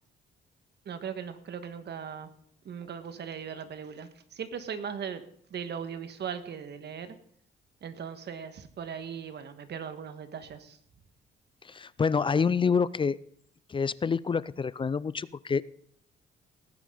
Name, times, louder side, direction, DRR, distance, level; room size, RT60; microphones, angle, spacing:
voice 1, 0.8-2.3 2.6-5.2 5.5-7.2 7.8-10.8, right 7 dB, 60° right, 9 dB, 1.6 m, -38 dB
voice 2, 11.7-13.2 13.7-15.6, left 5 dB, 25° left, 20 dB, 0.4 m, -27 dB
18.5 x 9.7 x 3.9 m, 0.64 s
cardioid pair, 90°, 20 cm